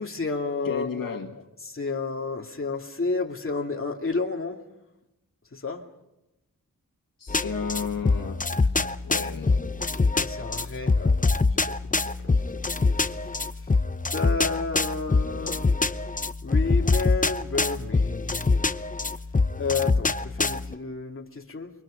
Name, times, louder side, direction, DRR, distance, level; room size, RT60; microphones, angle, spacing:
voice 1, 0.0-1.2 1.7-4.6 5.5-5.8 10.1-11.7 12.0-12.1 14.1-15.7 16.4-18.5 19.6-21.7, left 4 dB, 40° left, 2 dB, 2.6 m, -31 dB
voice 2, 0.6-1.3 7.2-9.7, left 6 dB, 85° left, 3 dB, 1.9 m, -33 dB
sound 1, 7.3-20.7, left 3 dB, 25° left, 0.7 m, -25 dB
29.0 x 24.0 x 5.2 m, 0.93 s
wide cardioid pair, 75°, 33 cm